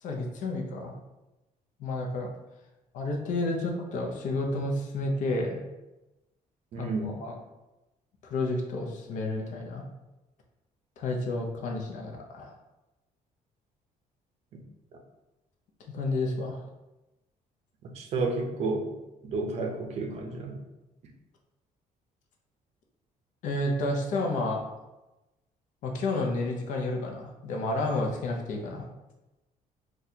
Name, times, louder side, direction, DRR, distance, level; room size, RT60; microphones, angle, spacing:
voice 1, 0.0-0.9 1.8-2.3 2.9-5.6 6.8-7.4 8.2-9.8 11.0-12.6 15.9-16.6 23.4-24.6 25.8-28.9, left 2 dB, 60° left, 1 dB, 0.6 m, -31 dB
voice 2, 6.7-7.1 14.5-14.6 17.9-18.9 19.2-20.6, right 3 dB, 50° right, 2 dB, 0.5 m, -31 dB
4.0 x 2.3 x 2.7 m, 1.0 s
cardioid pair, 175°, 15 cm